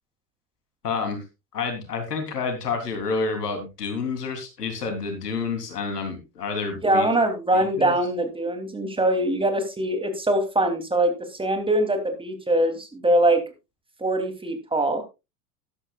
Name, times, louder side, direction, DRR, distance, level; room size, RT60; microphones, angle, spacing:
voice 1, 0.8-1.2 1.5-7.1 7.5-8.0, left 4 dB, 80° left, 6 dB, 3.6 m, -29 dB
voice 2, 6.8-11.1 11.4-13.4 14.0-15.0, right 1 dB, 10° right, 6 dB, 3.1 m, -22 dB
13.5 x 12.0 x 2.4 m, 0.25 s
figure-of-eight pair, 80°, 47 cm